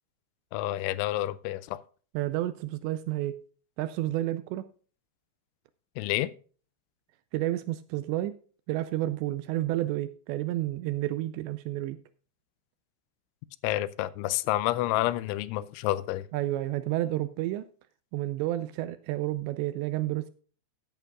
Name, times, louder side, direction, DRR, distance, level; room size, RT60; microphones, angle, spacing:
voice 1, 0.5-1.8 6.0-6.3 13.6-16.3, left 15 dB, 85° left, 2.9 m, -29 dB
voice 2, 2.1-3.4 3.8-4.7 7.3-8.4 8.7-12.0 16.3-17.7 18.1-20.3, right 15 dB, 80° right, 2.6 m, -30 dB
15.5 x 9.2 x 2.4 m
omnidirectional pair, 5.5 m